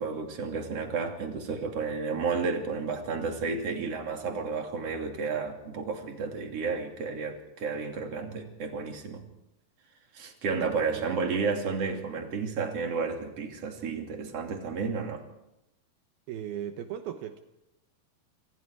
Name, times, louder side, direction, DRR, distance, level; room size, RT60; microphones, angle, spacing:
voice 1, 0.0-9.2 10.1-15.2, right 5 dB, 40° right, 3 dB, 3.6 m, -32 dB
voice 2, 16.3-17.4, right 10 dB, 75° right, 6 dB, 2.9 m, -37 dB
27.0 x 26.0 x 4.9 m, 0.88 s
omnidirectional pair, 4.5 m